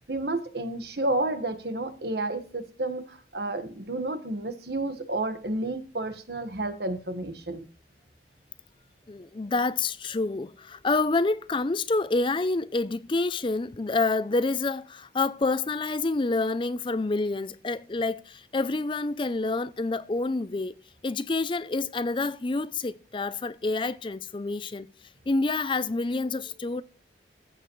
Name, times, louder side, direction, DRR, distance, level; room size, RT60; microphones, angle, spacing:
voice 1, 0.1-7.6, right 2 dB, 65° right, 1.5 m, -31 dB
voice 2, 9.1-20.7 21.0-24.9 25.3-26.8, left 3 dB, 30° left, 0.4 m, -28 dB
15.5 x 8.0 x 3.1 m
head